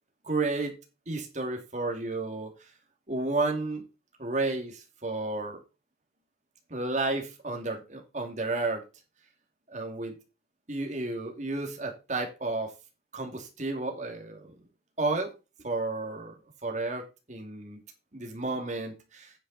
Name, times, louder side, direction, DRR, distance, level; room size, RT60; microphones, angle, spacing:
voice 1, 0.2-0.7 1.1-2.5 3.1-3.8 4.2-5.6 6.7-8.8 9.7-10.1 10.7-12.7 13.1-14.6 15.0-15.3 15.6-16.4 16.6-17.8 18.1-19.3, right 2 dB, 40° right, 3 dB, 2.7 m, -32 dB
9.5 x 8.1 x 4.2 m, 0.29 s
head